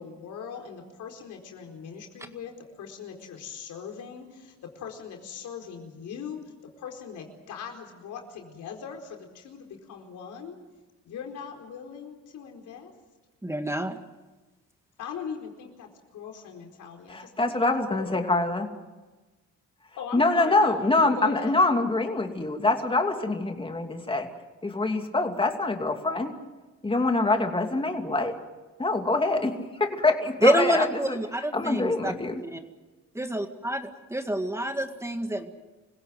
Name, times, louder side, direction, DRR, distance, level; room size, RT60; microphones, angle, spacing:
voice 1, 0.0-10.6 11.1-12.9 15.0-18.2 20.0-21.8, left 7 dB, 80° left, 3 dB, 4.4 m, -40 dB
voice 2, 13.4-14.0 30.4-32.1 32.5-32.6 33.2-35.5, right 1 dB, 10° right, 6 dB, 1.9 m, -27 dB
voice 3, 17.1-18.7 20.1-24.3 24.6-26.3 26.8-28.3 28.8-31.2 31.5-32.4, left 2 dB, 15° left, 4 dB, 2.7 m, -25 dB
26.0 x 16.5 x 9.3 m, 1.2 s
cardioid pair, 90°, 30 cm